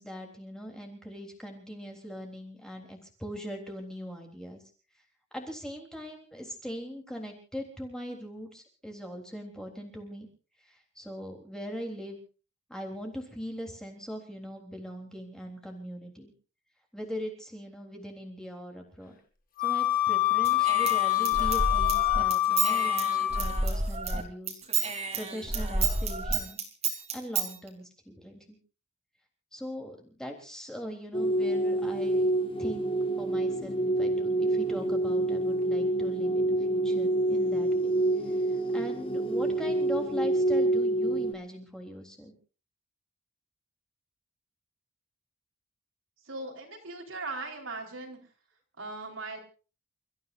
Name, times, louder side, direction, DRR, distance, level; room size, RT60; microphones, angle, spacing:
voice 1, 0.0-4.6 5.3-10.3 11.0-12.2 12.7-16.3 16.9-19.2 19.6-24.6 25.1-26.6 27.1-28.6 29.5-32.3 32.6-37.9 38.7-42.3, equal, 5° left, 1 dB, 3.6 m, -40 dB
Wind instrument woodwind instrument, 19.6-23.6, left 15 dB, 40° left, 1.9 m, -26 dB
Human voice / Scissors, 20.4-24.2 24.5-27.5, right 4 dB, 30° right, 3.6 m, -30 dB
sound 1, 31.1-41.3, right 1 dB, 25° left, 1.5 m, -27 dB
voice 2, 46.2-48.2 48.8-49.4, right 3 dB, 65° right, 1 dB, 4.3 m, -39 dB
29.5 x 14.5 x 2.6 m, 0.36 s
head